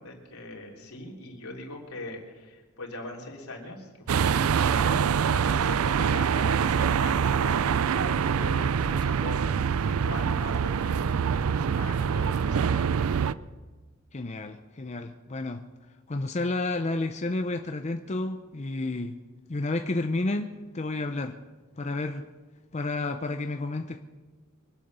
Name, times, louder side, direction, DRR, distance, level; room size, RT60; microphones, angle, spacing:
voice 1, 0.0-9.4 9.8-13.3, left 2 dB, 80° left, -1 dB, 3.4 m, -41 dB
sound 1, 4.1-13.3, right 7 dB, 70° right, 0.4 m, -25 dB
voice 2, 14.1-15.6 16.1-19.2 19.5-21.4 21.8-22.3 22.7-24.0, left 2 dB, 30° left, 6 dB, 0.6 m, -31 dB
24.5 x 8.4 x 6.8 m, 1.3 s
head